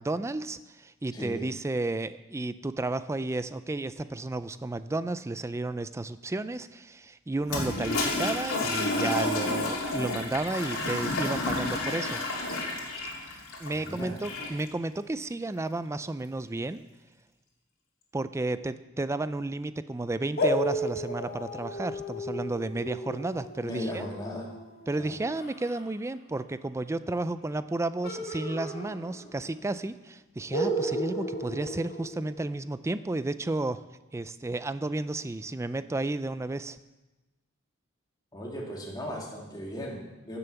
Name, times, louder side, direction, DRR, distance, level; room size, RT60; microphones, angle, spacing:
voice 1, 0.0-12.2 13.6-16.8 18.1-24.0 24.9-33.8 34.1-36.8, right 2 dB, 15° right, 13 dB, 0.3 m, -32 dB
voice 2, 1.1-1.5 13.7-14.2 23.6-24.5 25.0-25.1 38.3-40.4, equal, 20° left, -3 dB, 2.5 m, -37 dB
Toilet flush, 7.4-14.7, left 2 dB, 90° left, 3.0 m, -30 dB
sound 1, 20.4-25.8 28.0-29.5 29.8-29.9 30.5-32.7, equal, 50° left, 2.1 m, -33 dB
15.5 x 7.0 x 6.8 m, 1.1 s
head